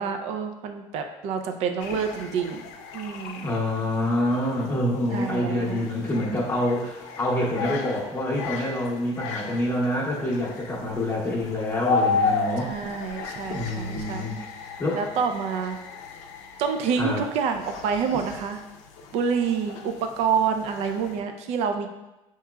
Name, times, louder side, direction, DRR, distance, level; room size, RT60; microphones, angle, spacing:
voice 1, 0.0-2.6 2.9-3.5 5.1-5.9 12.6-14.3 14.6-15.8 16.6-18.6 19.1-21.9, right 6 dB, 70° right, 6 dB, 0.4 m, -28 dB
sound 1, 1.8-21.2, left 5 dB, 85° left, 0.4 m, -34 dB
voice 2, 3.4-12.7 13.5-14.5 14.8-15.0 17.0-17.2, left 1 dB, 20° left, -5 dB, 0.8 m, -26 dB
5.6 x 3.0 x 2.3 m, 1.0 s
cardioid pair, 135°, 11 cm